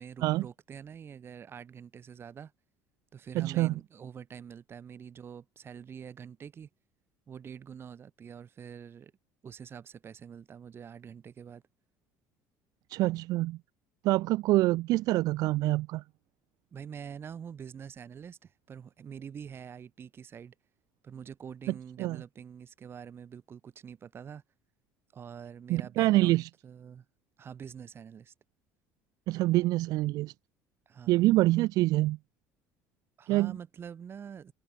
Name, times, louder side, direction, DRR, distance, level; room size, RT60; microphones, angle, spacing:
voice 1, 0.0-2.5 3.1-6.7 7.3-9.1 9.4-11.6 16.7-20.5 21.0-24.4 25.1-27.1 27.4-28.3 30.9-31.3 33.2-34.5, right 7 dB, 35° right, 3.6 m, -45 dB
voice 2, 3.3-3.7 12.9-13.6 14.0-16.0 22.0-22.2 25.7-26.5 29.3-30.3 31.1-32.2 33.3-33.5, right 18 dB, 65° right, 0.9 m, -26 dB
cardioid pair, 115°, 7 cm